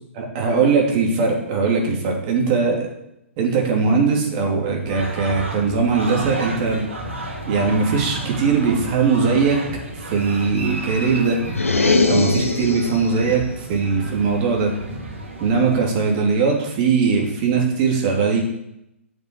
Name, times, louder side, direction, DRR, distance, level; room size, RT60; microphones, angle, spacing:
voice 1, 0.1-2.9 3.4-6.8 7.5-9.6 10.0-11.4 12.0-14.7 15.4-18.4, right 5 dB, 35° right, 1 dB, 3.2 m, -20 dB
sound 1, 4.8-15.8, right 1 dB, 65° right, 3.4 m, -33 dB
sound 2, 11.5-13.1, left 3 dB, 75° left, 1.4 m, -20 dB
8.1 x 7.0 x 8.5 m, 0.84 s
figure-of-eight pair, 120°, 7 cm